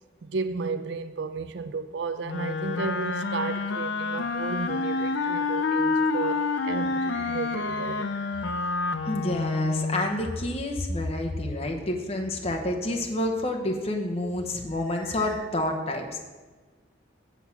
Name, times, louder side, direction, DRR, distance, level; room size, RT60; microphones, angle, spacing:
voice 1, 0.2-8.1, right 4 dB, 65° right, 0.4 m, -33 dB
Wind instrument woodwind instrument, 2.2-10.1, left 4 dB, 65° left, 0.5 m, -28 dB
sound 1, 3.0-9.0 14.6-15.4, left 1 dB, 10° left, 1.5 m, -48 dB
voice 2, 9.1-16.2, left 1 dB, 30° left, 0.9 m, -29 dB
8.4 x 7.1 x 5.9 m
head